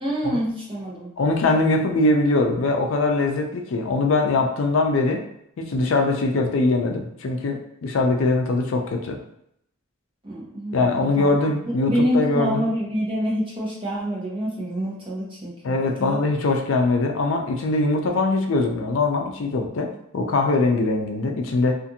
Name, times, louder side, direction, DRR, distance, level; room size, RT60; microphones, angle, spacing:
voice 1, 0.0-1.1 10.2-11.3 11.7-15.7 16.0-16.2, equal, 25° right, -6 dB, 0.8 m, -26 dB
voice 2, 1.2-5.2 5.6-9.2 10.7-12.7 15.6-19.9 20.1-21.8, left 2 dB, 65° left, 3 dB, 0.4 m, -22 dB
2.5 x 2.5 x 2.7 m, 0.73 s
head